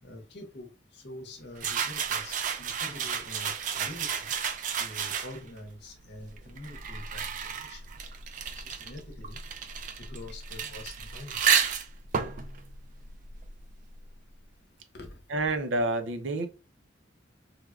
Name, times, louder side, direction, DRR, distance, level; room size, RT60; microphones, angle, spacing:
voice 1, 0.0-4.3 4.8-7.8 8.6-9.4 10.1-11.4 14.9-15.2, left 1 dB, 60° left, 0.8 m, -45 dB
sound 1, 1.6-5.6 6.3-13.8, right 7 dB, 45° right, 0.3 m, -32 dB
voice 2, 15.3-16.5, right 2 dB, 85° right, 0.6 m, -28 dB
3.3 x 2.1 x 2.3 m
head